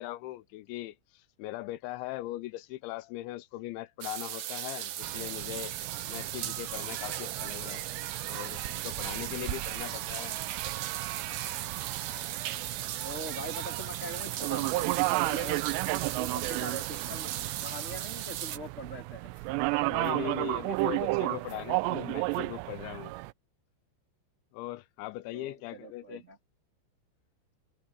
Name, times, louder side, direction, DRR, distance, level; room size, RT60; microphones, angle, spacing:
voice 1, 0.0-5.7 6.1-10.3 19.9-23.1 24.5-26.2, left 17 dB, 85° left, 3.0 m, -40 dB
sound 1, 4.0-18.6, right 12 dB, 65° right, 2.3 m, -37 dB
sound 2, 5.0-23.3, right 22 dB, 85° right, 2.5 m, -34 dB
voice 2, 13.0-15.6 16.1-17.3 17.6-19.3 25.3-26.4, right 1 dB, 30° right, 1.3 m, -42 dB
sound 3, 13.8-13.9 14.5-14.7 15.2-16.0 16.3-16.7 17.1-17.5 17.9-18.1 18.6-18.9 19.3-19.7 20.0-20.2 20.7-21.0 21.4-21.7 22.0-22.5 22.8-22.9, left 6 dB, 40° left, 6.8 m, -65 dB
omnidirectional pair, 5.3 m